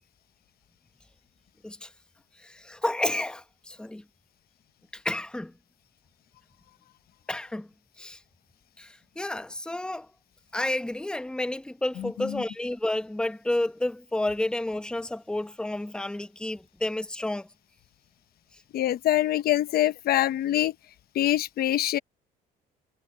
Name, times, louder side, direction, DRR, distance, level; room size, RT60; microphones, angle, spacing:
voice 1, 2.4-4.0 4.9-5.5 7.3-7.7 8.0-8.2 8.8-10.1 10.5-17.5, left 1 dB, 5° left, 1.0 m, -31 dB
voice 2, 12.0-12.4 18.7-20.7 21.1-22.0, left 13 dB, 65° left, 1.0 m, -25 dB
cardioid pair, 110°, 17 cm